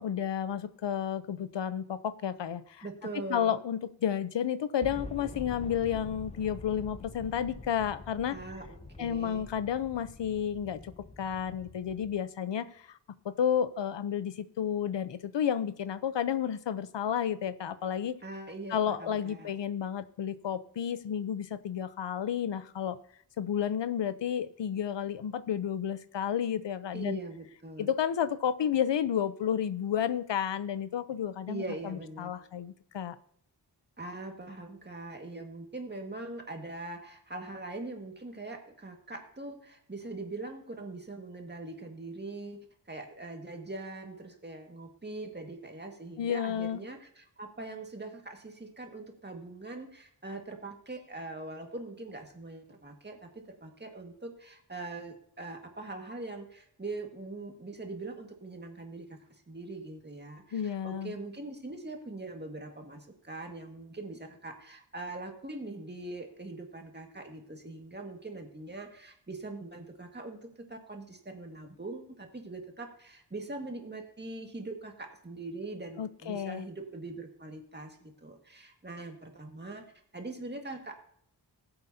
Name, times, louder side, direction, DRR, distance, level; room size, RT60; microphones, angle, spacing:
voice 1, 0.0-2.9 3.3-8.4 9.0-10.9 11.2-13.0 13.2-18.2 18.7-23.0 23.4-27.2 27.8-33.2 46.2-46.8 60.5-61.2 76.0-76.7, left 9 dB, 85° left, 14 dB, 0.7 m, -31 dB
voice 2, 2.8-3.6 8.3-9.4 18.2-19.5 26.9-27.9 31.5-32.3 34.0-79.8 80.1-81.0, right 2 dB, 25° right, 3 dB, 1.8 m, -42 dB
sound 1, 4.8-12.2, left 3 dB, 15° left, 0.5 m, -46 dB
19.0 x 7.9 x 2.8 m, 0.65 s
wide cardioid pair, 85°, 42 cm